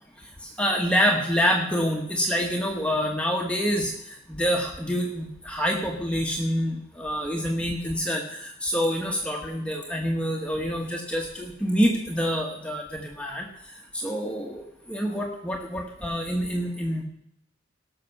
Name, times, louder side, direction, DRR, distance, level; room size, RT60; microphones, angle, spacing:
voice 1, 0.6-3.9 4.3-13.5 14.0-14.6 14.9-17.0, equal, 5° left, 0 dB, 1.3 m, -26 dB
18.5 x 6.8 x 5.9 m, 0.77 s
head